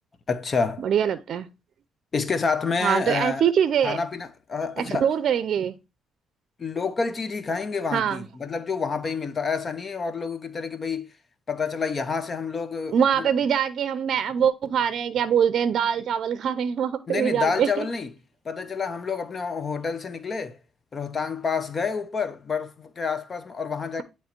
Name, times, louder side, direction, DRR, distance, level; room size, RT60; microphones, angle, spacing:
voice 1, 0.3-0.9 2.1-3.4 3.8-5.1 6.6-11.1 11.5-13.3 17.1-18.1 18.5-20.6 20.9-24.0, left 5 dB, 40° left, 0.7 m, -28 dB
voice 2, 0.8-1.5 2.8-4.0 4.8-5.7 7.9-8.2 12.9-17.9, right 8 dB, 65° right, 0.5 m, -23 dB
9.2 x 3.1 x 4.4 m
cardioid pair, 90°, 0 cm